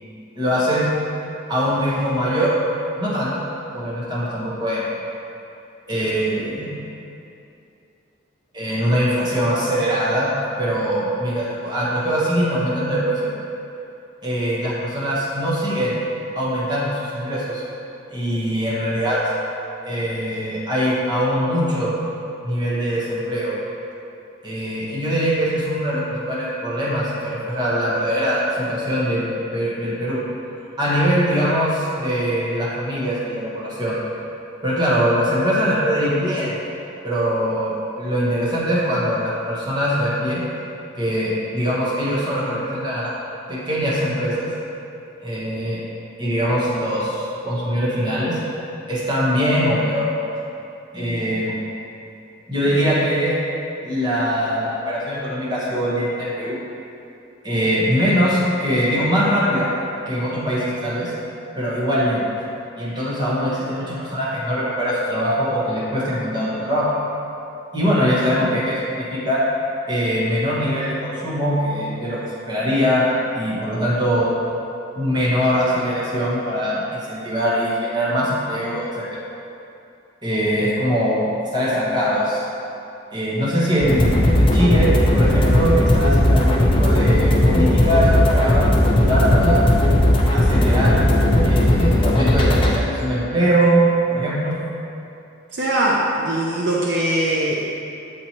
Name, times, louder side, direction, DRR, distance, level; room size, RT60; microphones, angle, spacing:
voice 1, 0.3-0.9 1.5-2.5 3.0-3.5 3.7-4.9 5.9-6.8 8.5-13.2 14.2-15.9 16.3-17.6 18.1-19.2 19.8-21.9 22.4-23.5 24.4-30.2 30.8-34.0 34.6-36.5 37.0-40.4 40.9-43.1 43.5-44.5 45.2-45.8 46.2-48.4 48.9-50.0 50.9-51.5 52.5-53.3 53.8-56.6 57.4-59.7 60.1-61.1 61.6-62.2 62.8-66.9 67.7-69.4 69.9-74.3 74.9-79.2 80.2-81.3 81.5-82.4 83.1-88.7 89.0-89.6 90.3-91.1 91.4-94.5, equal, 25° right, -8 dB, 1.2 m, -22 dB
sound 1, 83.8-92.8, left 1 dB, 25° left, 0.5 m, -16 dB
voice 2, 95.5-97.6, right 1 dB, 65° right, -3 dB, 0.5 m, -21 dB
7.3 x 4.3 x 3.0 m, 2.7 s
head